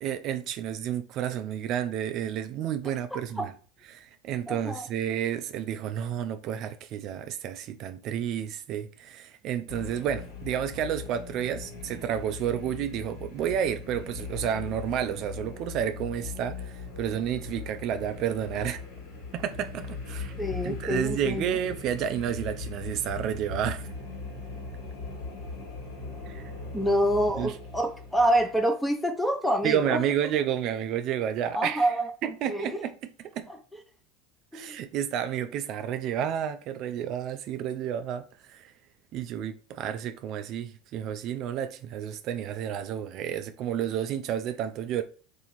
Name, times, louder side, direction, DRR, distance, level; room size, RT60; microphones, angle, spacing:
voice 1, 0.0-3.5 3.9-18.8 19.3-20.4 20.6-23.9 26.3-26.5 27.4-27.6 29.6-31.9 32.2-32.9 33.3-33.5 34.5-38.7 39.1-45.0, right 9 dB, 50° right, 0.3 m, -31 dB
voice 2, 3.1-3.5 4.5-4.9 20.4-21.6 26.7-30.0 31.5-32.1 32.5-32.7 34.5-34.8, right 1 dB, 5° left, 0.7 m, -27 dB
sound 1, 9.7-28.6, left 4 dB, 70° left, 1.5 m, -39 dB
2.9 x 2.6 x 4.0 m
supercardioid pair, 100°, 0 cm